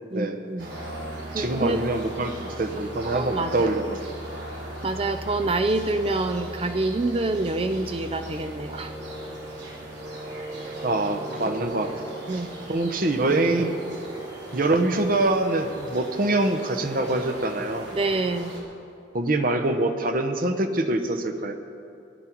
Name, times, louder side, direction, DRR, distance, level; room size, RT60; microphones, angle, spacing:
voice 1, 0.1-0.7 1.3-1.8 3.1-3.7 4.8-8.9 12.3-12.5 17.9-18.5, right 2 dB, 30° right, 8 dB, 0.5 m, -26 dB
sound 1, 0.6-18.6, right 1 dB, 60° right, 3.0 m, -37 dB
voice 2, 1.4-4.1 10.8-11.9 12.7-13.8 14.5-17.9 19.1-21.5, right 2 dB, 45° right, 7 dB, 0.9 m, -24 dB
17.5 x 11.0 x 4.6 m, 2.5 s
head